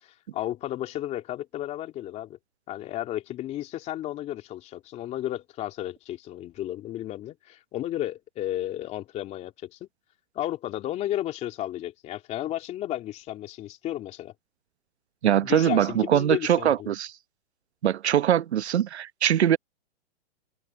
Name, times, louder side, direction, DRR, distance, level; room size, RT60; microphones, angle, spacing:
voice 1, 0.0-2.4 2.7-9.9 10.3-14.3 15.4-16.9, left 13 dB, 20° left, 3.1 m, -33 dB
voice 2, 15.2-17.1 17.8-19.6, right 10 dB, 85° right, 1.0 m, -22 dB
hypercardioid pair, 155°, 32 cm